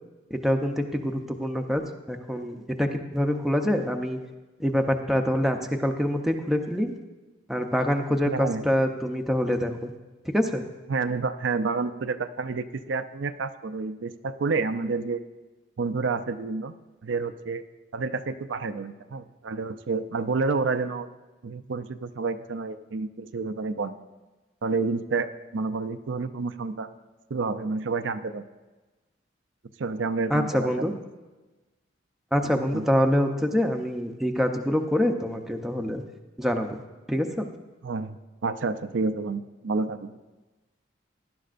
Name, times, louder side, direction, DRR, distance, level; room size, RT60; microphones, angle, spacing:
voice 1, 0.3-1.8 2.1-4.2 4.6-5.6 5.8-6.9 7.5-9.9 10.3-10.6 30.3-30.9 32.3-36.0 36.4-36.8 37.1-37.5, equal, ahead, 3 dB, 0.7 m, -25 dB
voice 2, 8.3-8.7 10.9-15.2 15.8-16.8 17.0-17.6 17.9-21.1 21.4-24.0 24.6-26.9 27.3-28.4 29.8-30.9 32.7-32.9 37.8-38.2 38.4-40.1, right 4 dB, 75° right, 10 dB, 0.5 m, -29 dB
18.0 x 11.0 x 2.5 m, 1.2 s
head